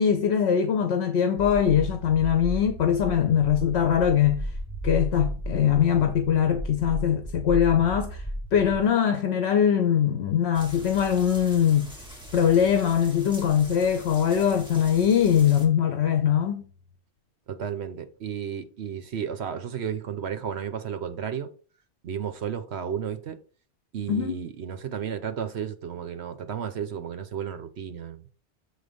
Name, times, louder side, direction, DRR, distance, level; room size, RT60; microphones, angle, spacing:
voice 1, 0.0-4.5 4.8-8.2 8.5-11.9 12.3-16.7 24.1-24.3, left 8 dB, 70° left, 1.0 m, -22 dB
sound 1, 1.3-8.9, right 1 dB, 15° left, 1.9 m, -34 dB
sound 2, 10.5-15.7, equal, 5° right, 2.0 m, -44 dB
voice 2, 17.5-21.5 22.0-23.4 23.9-28.3, right 8 dB, 70° right, 1.1 m, -33 dB
7.1 x 4.1 x 5.3 m
omnidirectional pair, 1.2 m